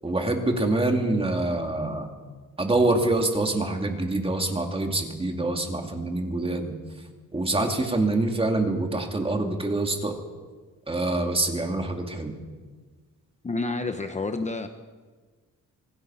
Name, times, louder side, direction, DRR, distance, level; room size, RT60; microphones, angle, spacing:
voice 1, 0.0-2.1 2.6-6.8 7.3-10.2 10.9-12.3, right 2 dB, 15° right, 3 dB, 2.4 m, -25 dB
voice 2, 13.4-14.7, left 3 dB, 20° left, 7 dB, 0.9 m, -29 dB
26.0 x 19.5 x 5.7 m, 1.4 s
wide cardioid pair, 150°, 32 cm